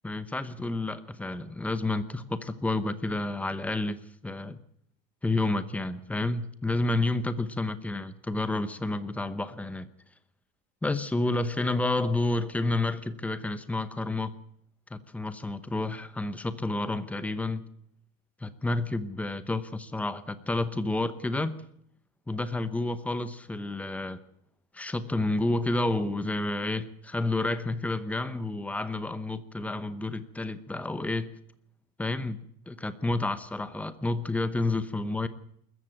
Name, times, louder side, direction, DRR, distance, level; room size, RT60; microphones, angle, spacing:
voice 1, 0.0-4.6 5.2-9.9 10.8-14.3 14.9-17.6 18.4-21.6 22.3-24.2 24.7-31.3 32.0-35.3, left 2 dB, 5° left, 13 dB, 0.9 m, -30 dB
20.5 x 14.5 x 9.1 m, 0.71 s
cardioid pair, 175°, 30 cm